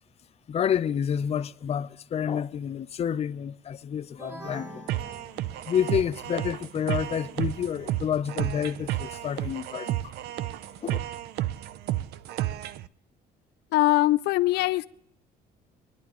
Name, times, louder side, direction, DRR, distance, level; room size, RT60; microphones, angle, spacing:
voice 1, 0.5-4.8 5.7-10.1 10.8-11.0, left 8 dB, 40° left, 0.6 m, -29 dB
sound 1, 4.2-6.0, equal, 15° right, 2.1 m, -43 dB
sound 2, 4.9-12.9, right 13 dB, 75° right, 0.5 m, -32 dB
voice 2, 13.7-14.9, left 17 dB, 80° left, 0.4 m, -22 dB
25.5 x 10.5 x 3.0 m
cardioid pair, 110°, 17 cm